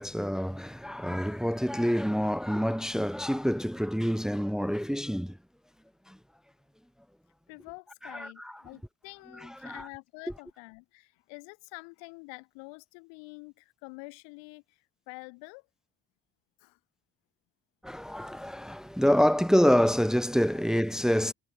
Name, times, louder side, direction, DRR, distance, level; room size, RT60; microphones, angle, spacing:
voice 1, 0.0-5.4 6.1-6.2 8.0-8.5 9.4-9.9 17.8-21.3, equal, ahead, 1.5 m, -27 dB
voice 2, 7.5-15.7 16.6-16.8, left 34 dB, 70° left, 3.0 m, -47 dB
figure-of-eight pair, 40°, 45 cm